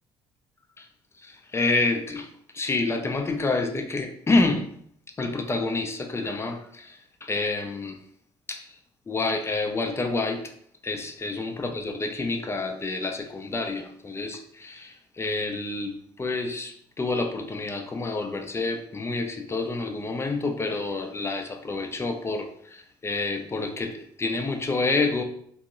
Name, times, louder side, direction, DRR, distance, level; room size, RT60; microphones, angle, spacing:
voice 1, 1.2-2.3 2.5-4.7 5.2-8.0 8.5-8.7 9.1-10.4 10.8-25.2, left 3 dB, 20° left, 4 dB, 0.5 m, -28 dB
3.5 x 2.0 x 2.5 m, 0.65 s
figure-of-eight pair, 50°, 13 cm